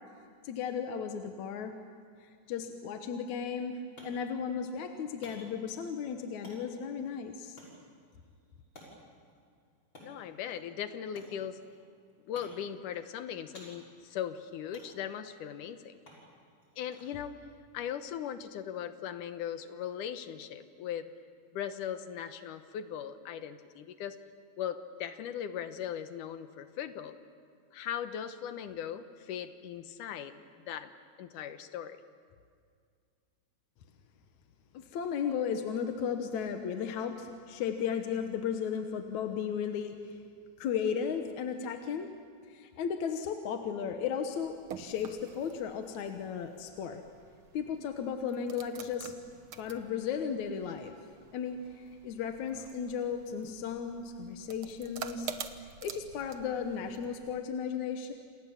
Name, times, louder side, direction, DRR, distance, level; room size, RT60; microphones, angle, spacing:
voice 1, 0.4-1.8 2.2-7.6 34.7-40.2 40.6-42.1 42.5-47.0 47.5-49.1 49.6-50.9 51.3-55.3 55.6-58.1, left 7 dB, 70° left, 5 dB, 2.5 m, -35 dB
sound 1, 3.4-19.0, equal, 35° left, 6.7 m, -58 dB
voice 2, 10.0-11.6 12.3-16.0 16.8-17.4 17.7-21.1 21.5-24.2 24.6-27.2 27.7-30.4 30.7-30.9 31.2-32.0, left 9 dB, 90° left, 10 dB, 2.6 m, -39 dB
sound 2, 44.3-57.4, right 7 dB, 55° right, 1.6 m, -48 dB
28.5 x 28.5 x 7.3 m, 2.2 s
omnidirectional pair, 3.6 m